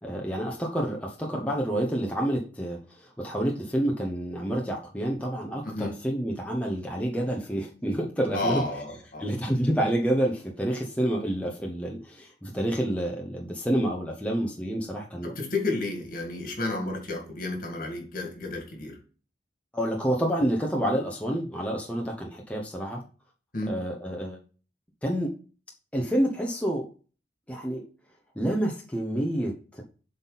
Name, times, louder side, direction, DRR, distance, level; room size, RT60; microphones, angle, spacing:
voice 1, 0.0-8.6 9.2-15.3 19.7-23.0 23.7-24.4 25.0-25.3 25.9-26.9 27.5-27.8 28.4-29.8, right 1 dB, 10° left, -1 dB, 0.9 m, -28 dB
voice 2, 5.6-6.0 8.3-9.3 15.2-19.0 23.5-23.8, left 2 dB, 50° left, 2 dB, 2.2 m, -31 dB
7.8 x 4.1 x 4.0 m, 0.37 s
head